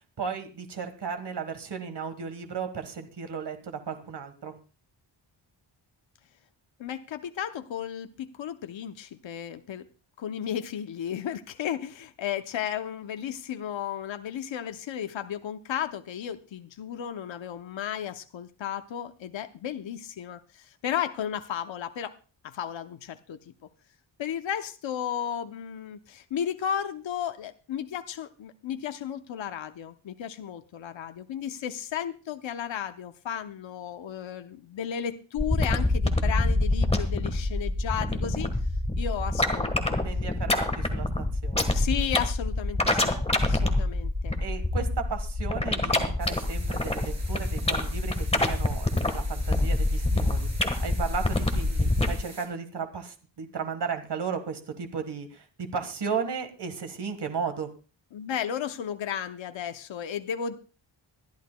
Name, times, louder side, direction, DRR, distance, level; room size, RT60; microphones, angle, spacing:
voice 1, 0.2-4.5 40.0-41.8 44.4-50.5 50.8-57.7, right 6 dB, 55° right, 7 dB, 1.5 m, -35 dB
voice 2, 6.8-9.9 10.2-22.1 22.4-23.5 24.2-38.5 39.0-40.0 40.5-40.6 41.7-44.4 58.1-60.6, left 9 dB, 65° left, 9 dB, 0.8 m, -34 dB
sound 1, 35.4-52.1, left 2 dB, 15° left, 1.4 m, -25 dB
sound 2, 46.2-52.5, right 3 dB, 35° right, 3.6 m, -47 dB
23.0 x 11.5 x 2.2 m, 0.35 s
wide cardioid pair, 140°, 48 cm